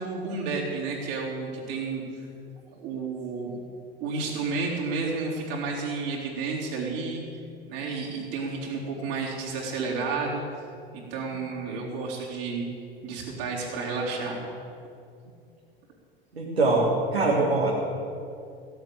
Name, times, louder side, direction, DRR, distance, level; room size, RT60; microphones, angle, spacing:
voice 1, 0.0-2.0 2.8-3.5 4.0-7.2 7.7-10.4 10.9-12.7 13.0-14.4, right 4 dB, 50° right, -3 dB, 4.0 m, -31 dB
voice 2, 16.3-17.7, right 3 dB, 80° right, -4 dB, 2.0 m, -23 dB
16.5 x 8.1 x 8.7 m, 2.5 s
figure-of-eight pair, 80°, 31 cm